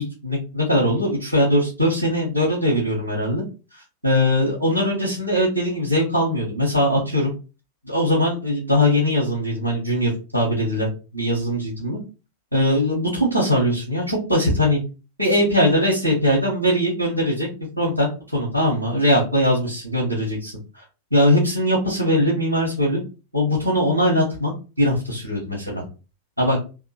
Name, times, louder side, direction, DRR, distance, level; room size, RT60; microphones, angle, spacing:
voice 1, 0.0-3.4 4.0-7.3 7.8-10.9 11.1-12.0 12.5-14.8 15.2-17.5 17.8-20.5 21.1-23.0 23.3-24.5 24.8-25.8 26.4-26.6, equal, 85° right, -4 dB, 1.4 m, -21 dB
3.6 x 2.9 x 4.1 m, 0.32 s
figure-of-eight pair, 90°, 0 cm